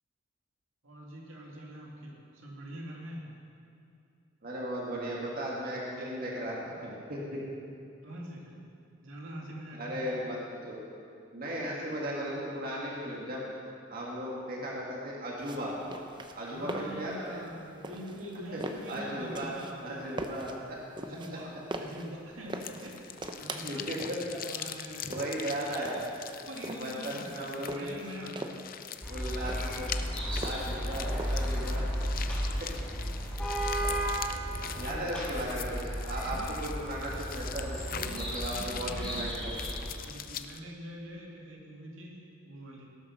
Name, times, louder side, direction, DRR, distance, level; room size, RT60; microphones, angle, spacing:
voice 1, 0.8-3.3 8.0-8.6 9.0-10.4 16.5-20.1 21.0-23.8 24.4-25.4 26.3-28.6 34.7-35.3 36.2-36.6 37.9-39.2 40.0-42.9, equal, 75° right, -2 dB, 2.3 m, -44 dB
voice 2, 4.4-7.4 9.7-10.8 11.3-13.4 13.9-15.8 16.4-17.4 18.5-18.6 18.9-19.5 19.8-20.8 21.3-21.4 23.6-24.4 25.1-26.0 26.7-28.0 29.1-30.0 30.4-31.9 32.6-32.7 34.8-39.6, right 1 dB, 45° right, -4 dB, 2.1 m, -36 dB
sound 1, 15.4-32.0, right 1 dB, 25° right, 0.7 m, -43 dB
sound 2, 22.6-40.6, left 9 dB, 45° left, 0.5 m, -43 dB
sound 3, 29.0-39.9, equal, 5° left, 3.1 m, -34 dB
17.5 x 7.4 x 6.4 m, 2.6 s
head